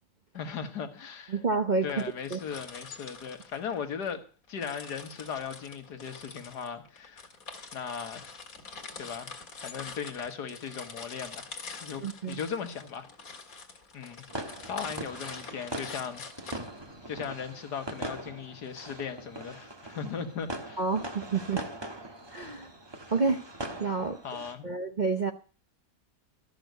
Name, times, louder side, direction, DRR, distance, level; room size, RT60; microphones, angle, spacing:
voice 1, 0.3-1.4 1.8-4.2 4.5-7.3 7.7-8.3 9.0-9.4 9.6-11.5 11.8-13.1 13.9-14.2 14.6-16.2 16.5-16.7 17.1-20.8 24.2-24.7, left 6 dB, 75° left, 2.0 m, -37 dB
voice 2, 1.3-1.9 2.3-2.4 12.0-12.4 20.8-21.6 22.3-22.7 23.1-23.4 23.8-24.2 24.6-25.3, right 4 dB, 40° right, 0.6 m, -28 dB
sound 1, 1.9-4.1 4.6-17.3, left 4 dB, 60° left, 2.3 m, -45 dB
sound 2, 14.3-24.5, right 1 dB, 15° right, 1.2 m, -41 dB
13.5 x 6.5 x 9.1 m
omnidirectional pair, 1.8 m